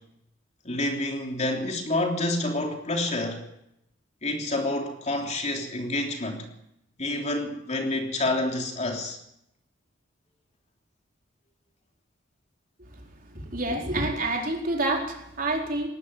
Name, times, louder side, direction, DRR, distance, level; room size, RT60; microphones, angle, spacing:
voice 1, 0.6-3.4 4.2-6.5 7.0-9.2, left 2 dB, 35° left, 3.3 m, -28 dB
voice 2, 13.3-15.9, right 2 dB, 45° right, 4.4 m, -28 dB
19.0 x 15.5 x 9.5 m
head